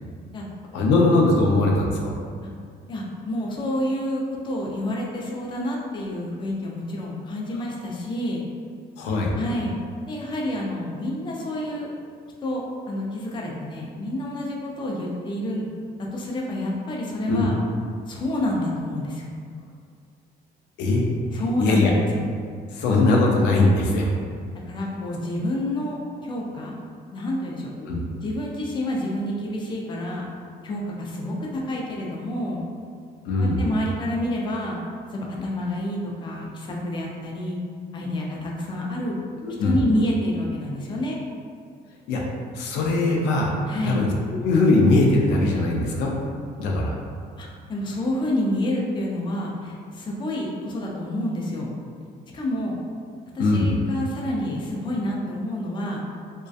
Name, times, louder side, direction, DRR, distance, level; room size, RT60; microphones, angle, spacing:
voice 1, 0.7-2.1 9.0-9.3 17.3-17.5 20.8-21.1 21.3-21.9 22.7-24.1 27.8-28.0 33.3-33.6 39.4-39.8 42.1-42.2 42.5-43.6 43.8-44.1 44.4-46.1 46.6-46.9 53.4-53.7, left 2 dB, 85° left, -2 dB, 0.4 m, -20 dB
voice 2, 2.9-8.4 9.3-9.7 10.1-11.9 12.4-15.7 16.0-17.6 18.1-19.3 21.3-22.2 24.7-26.7 27.1-27.7 28.2-30.3 30.6-32.6 33.4-34.8 35.1-37.6 37.9-39.2 39.6-41.2 43.7-44.1 47.4-51.7 52.3-52.8 53.3-56.0, left 1 dB, 30° left, -2 dB, 0.4 m, -28 dB
2.6 x 2.2 x 2.3 m, 2.2 s
cardioid pair, 110°, 17 cm